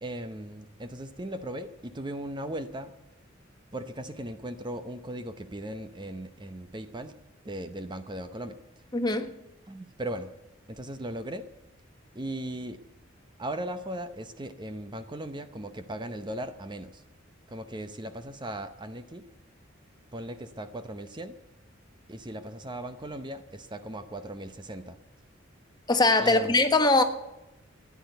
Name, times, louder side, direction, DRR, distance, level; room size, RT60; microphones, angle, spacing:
voice 1, 0.0-2.9 3.7-7.1 7.4-8.6 9.7-10.3 10.7-11.5 12.1-12.8 13.4-17.0 17.5-19.2 20.1-21.4 22.1-25.0 26.2-26.6, right 1 dB, 25° right, 9 dB, 0.7 m, -38 dB
voice 2, 8.9-9.3 25.9-27.0, left 2 dB, 20° left, 7 dB, 1.2 m, -21 dB
14.5 x 10.5 x 8.0 m, 0.93 s
head